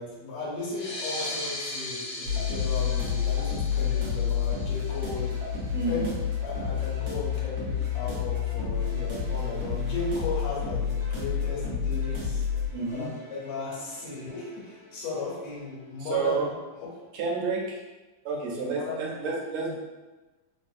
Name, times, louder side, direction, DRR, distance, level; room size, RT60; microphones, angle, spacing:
voice 1, 0.0-5.3 5.9-6.2 6.4-12.4 12.9-16.9 18.5-19.4, left 3 dB, 80° left, -4 dB, 1.8 m, -36 dB
sound 1, 0.7-5.8, left 1 dB, 65° left, 1.3 m, -38 dB
sound 2, 2.3-15.0, left 7 dB, 50° right, 1.4 m, -30 dB
voice 2, 5.7-6.1 12.7-13.1 16.0-16.4 17.1-17.8 18.2-19.8, right 4 dB, 75° right, -2 dB, 1.4 m, -30 dB
3.6 x 2.5 x 2.4 m, 1.2 s
omnidirectional pair, 2.4 m